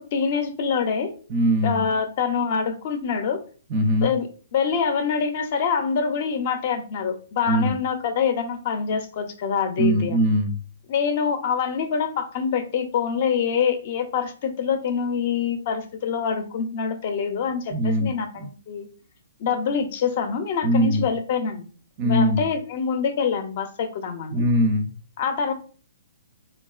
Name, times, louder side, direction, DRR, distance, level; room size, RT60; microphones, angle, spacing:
voice 1, 0.0-1.1 1.6-3.4 4.0-4.3 4.5-10.3 10.9-18.9 19.4-21.7 22.0-24.4 25.2-25.5, left 6 dB, 45° left, 7 dB, 0.4 m, -25 dB
voice 2, 1.3-1.8 3.7-4.1 7.5-7.7 9.8-10.5 17.7-18.1 18.4-18.5 20.6-21.0 22.0-22.4 24.3-24.9, equal, 30° right, 6 dB, 0.4 m, -21 dB
3.0 x 2.3 x 2.3 m, 0.41 s
hypercardioid pair, 155°, 0 cm